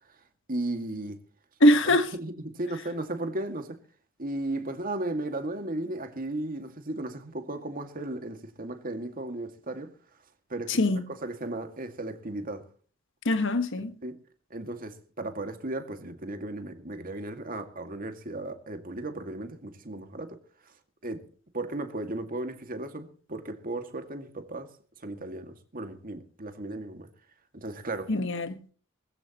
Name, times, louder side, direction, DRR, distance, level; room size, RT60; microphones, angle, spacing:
voice 1, 0.5-1.2 1.9-3.8 4.2-9.9 10.5-10.8 11.1-12.6 14.0-14.2 14.5-20.4 21.0-21.2 21.5-24.7 25.0-27.1 27.5-28.1, right 2 dB, 45° right, 2.2 m, -35 dB
voice 2, 1.6-2.1 10.7-11.0 13.2-13.9 28.1-28.6, left 1 dB, 65° left, 1.5 m, -22 dB
20.5 x 15.0 x 3.0 m
head